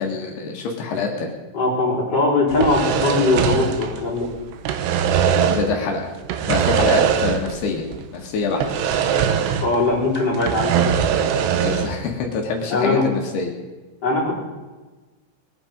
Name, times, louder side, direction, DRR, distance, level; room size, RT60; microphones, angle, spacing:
voice 1, 0.0-1.3 5.5-6.0 6.5-7.8 8.1-8.6 11.5-13.5, left 4 dB, 75° left, 1 dB, 3.7 m, -25 dB
voice 2, 1.5-4.3 9.6-10.9 12.7-13.0 14.0-14.3, left 2 dB, 25° left, -4 dB, 4.4 m, -20 dB
sound 1, 2.5-4.3 4.5-5.8 6.3-7.7 7.9-8.0 8.6-9.9 10.2-12.0, right 8 dB, 85° right, 3.1 m, -21 dB
22.0 x 9.6 x 5.2 m, 1.3 s
omnidirectional pair, 4.9 m